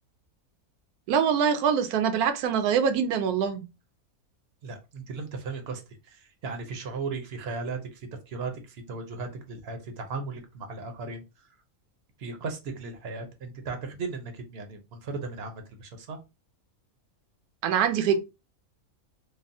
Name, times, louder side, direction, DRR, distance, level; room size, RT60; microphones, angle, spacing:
voice 1, 1.1-3.6 17.6-18.2, right 7 dB, 85° right, 1.1 m, -24 dB
voice 2, 4.6-11.2 12.2-16.2, right 4 dB, 60° right, 0.7 m, -36 dB
3.3 x 2.0 x 2.6 m
omnidirectional pair, 1.6 m